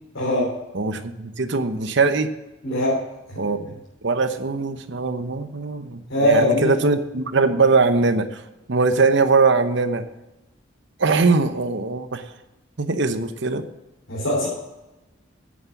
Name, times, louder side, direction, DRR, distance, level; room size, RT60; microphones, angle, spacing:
voice 1, 0.1-0.6 2.6-3.0 3.3-3.7 6.1-6.8 14.1-14.5, left 1 dB, 85° left, -6 dB, 3.4 m, -22 dB
voice 2, 0.7-2.3 3.4-3.6 4.0-8.4 8.7-10.1 11.0-12.2 12.8-13.6, right 4 dB, 65° right, 10 dB, 0.9 m, -21 dB
8.7 x 7.5 x 7.1 m, 0.99 s
head